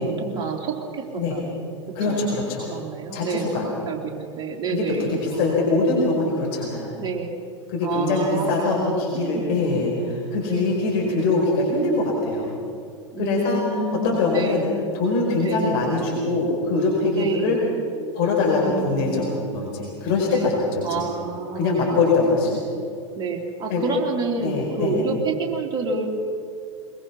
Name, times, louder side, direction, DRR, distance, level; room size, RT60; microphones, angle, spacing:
voice 1, 0.0-1.0 1.3-1.5 2.1-2.2 2.7-5.9 7.0-7.3 7.8-9.8 10.5-10.8 13.1-14.7 15.4-15.7 17.1-17.6 18.6-19.4 20.3-20.5 20.8-22.3 23.2-26.1, right 4 dB, 25° right, -1 dB, 3.5 m, -29 dB
voice 2, 1.9-2.7 3.1-3.6 4.7-6.9 7.7-12.5 13.2-13.6 13.9-14.6 14.9-17.6 18.1-21.1 21.5-22.6 23.7-23.8 24.4-25.0, left 3 dB, 50° left, -2 dB, 4.9 m, -23 dB
22.5 x 22.0 x 5.8 m, 2.5 s
figure-of-eight pair, 85°, 16 cm